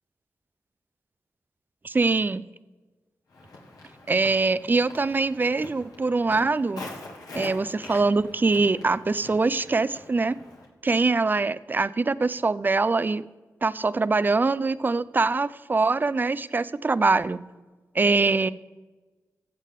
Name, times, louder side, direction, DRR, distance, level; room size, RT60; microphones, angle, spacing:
voice 1, 1.8-2.4 4.1-6.8 7.3-10.4 10.8-13.2 13.6-17.4 18.0-18.5, right 3 dB, 30° right, 17 dB, 0.4 m, -23 dB
Walk footsteps, 3.3-10.7, left 2 dB, 85° left, 1.9 m, -44 dB
15.0 x 8.2 x 3.6 m, 1.3 s
cardioid pair, 65°, 6 cm